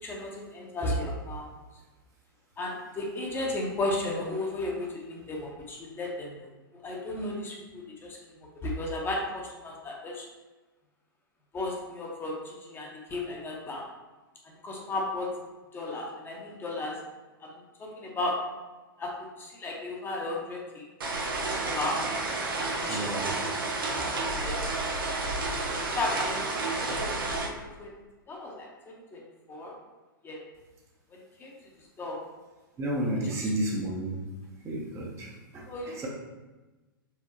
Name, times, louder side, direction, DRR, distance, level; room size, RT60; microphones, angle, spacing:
voice 1, 0.0-1.5 2.6-10.3 11.5-13.8 14.4-15.3 15.7-17.0 17.4-18.4 19.0-20.8 21.7-22.0 22.6-23.3 24.0-24.6 25.9-26.5 26.8-28.0 28.3-29.2 29.5-29.7 30.2-30.4 31.1-31.5 32.0-32.2 35.7-35.9, left 2 dB, 20° left, -1 dB, 0.9 m, -35 dB
sound 1, 21.0-27.5, right 2 dB, 70° right, 0.8 m, -30 dB
voice 2, 22.9-23.3 32.8-34.2 34.6-36.1, right 1 dB, 25° right, -2 dB, 0.8 m, -32 dB
5.0 x 3.6 x 2.8 m, 1.2 s
figure-of-eight pair, 105°, 12 cm